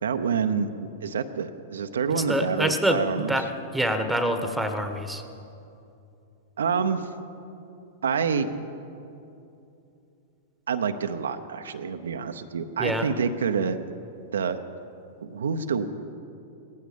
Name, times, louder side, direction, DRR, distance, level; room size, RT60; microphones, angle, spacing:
voice 1, 0.0-0.7 1.0-3.3 6.6-7.1 8.0-8.5 10.7-13.8 14.3-14.6 15.2-15.9, right 6 dB, 75° right, 7 dB, 0.8 m, -27 dB
voice 2, 2.2-3.5 3.7-5.2 12.8-13.1, right 1 dB, ahead, 7 dB, 1.4 m, -26 dB
17.5 x 15.0 x 5.2 m, 2.7 s
hypercardioid pair, 100°, 0 cm